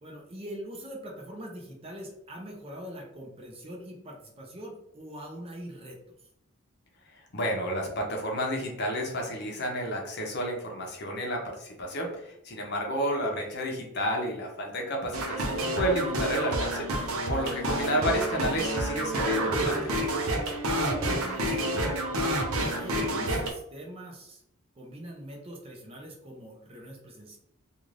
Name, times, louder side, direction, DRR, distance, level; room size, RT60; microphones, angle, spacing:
voice 1, 0.0-6.2 20.0-20.8 21.0-22.0 22.6-24.4 24.8-27.4, equal, 25° right, -1 dB, 0.5 m, -43 dB
voice 2, 7.3-19.9, equal, 50° left, 0 dB, 0.7 m, -31 dB
sound 1, 15.1-23.5, right 1 dB, 80° right, 0.6 m, -29 dB
2.5 x 2.5 x 3.1 m, 0.76 s
head